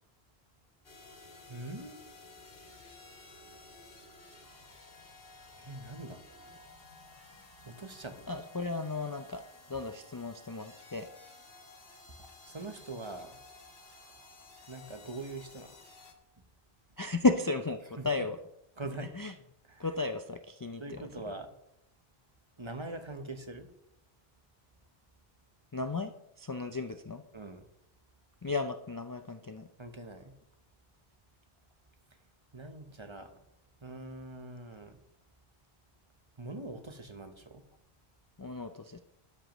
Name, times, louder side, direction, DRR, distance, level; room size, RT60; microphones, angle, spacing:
sound 1, 0.8-16.1, left 3 dB, 70° left, 1.8 m, -54 dB
voice 1, 1.5-2.0 5.6-6.2 7.6-8.3 12.2-13.4 14.7-15.8 18.0-18.3 18.8-19.1 19.6-19.9 20.8-21.5 22.6-23.7 27.3-27.6 29.8-30.3 32.5-33.4 33.8-35.0 36.4-37.6, right 2 dB, 30° right, 7 dB, 0.9 m, -43 dB
voice 2, 8.3-9.4 9.7-11.1 17.0-18.4 19.2-19.3 19.8-21.0 25.7-26.1 26.4-27.2 28.4-29.7 38.4-39.0, left 3 dB, 35° left, 7 dB, 0.3 m, -33 dB
12.5 x 10.5 x 3.0 m, 0.84 s
omnidirectional pair, 1.0 m